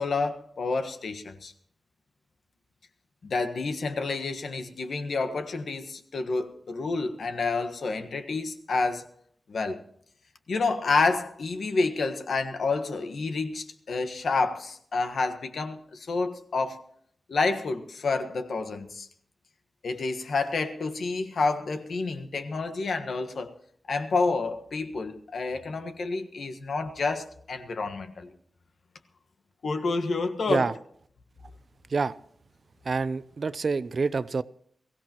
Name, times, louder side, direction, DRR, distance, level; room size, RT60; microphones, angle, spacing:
voice 1, 0.0-1.5 3.2-9.1 9.5-9.8 10.5-16.9 17.3-19.1 19.8-23.5 23.9-28.3 29.6-30.7, left 3 dB, 70° left, 1.4 m, -29 dB
voice 2, 32.8-34.4, right 4 dB, 50° right, 0.5 m, -27 dB
22.5 x 16.0 x 3.0 m
wide cardioid pair, 155°, 0 cm